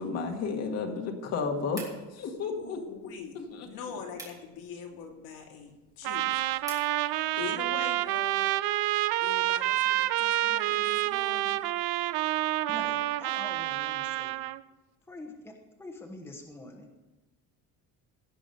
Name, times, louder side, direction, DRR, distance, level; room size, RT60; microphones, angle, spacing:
voice 1, 0.0-1.8 2.1-2.8 3.3-3.7, left 5 dB, 45° left, 1.8 m, -32 dB
sound 1, 1.7-6.9, right 2 dB, 10° right, 2.6 m, -50 dB
voice 2, 2.4-6.6 6.9-8.5 9.2-11.6, left 6 dB, 70° left, 2.6 m, -43 dB
Trumpet, 6.0-14.6, right 15 dB, 75° right, 0.6 m, -28 dB
voice 3, 12.7-14.3 15.1-17.0, left 1 dB, 5° left, 1.1 m, -45 dB
17.0 x 6.2 x 6.7 m
cardioid pair, 180°, 36 cm